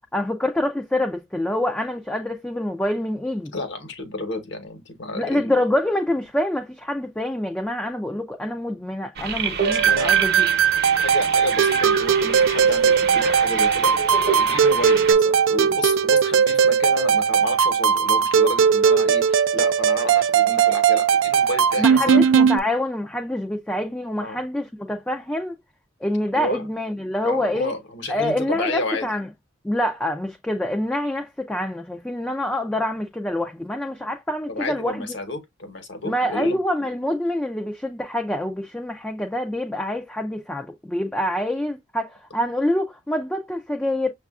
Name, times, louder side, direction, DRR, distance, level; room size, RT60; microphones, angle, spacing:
voice 1, 0.1-3.5 5.1-10.5 21.8-25.5 26.0-27.7 28.1-29.3 29.6-35.2 36.0-44.1, left 1 dB, 5° left, 0.3 m, -26 dB
voice 2, 3.5-5.5 9.9-10.3 10.9-22.2 24.2-24.4 26.3-26.7 27.2-29.0 34.5-36.6, left 2 dB, 65° left, 1.0 m, -31 dB
sound 1, 9.2-15.1, right 6 dB, 55° right, 0.8 m, -28 dB
sound 2, 9.6-22.6, right 7 dB, 80° right, 0.4 m, -18 dB
6.4 x 2.4 x 2.3 m
head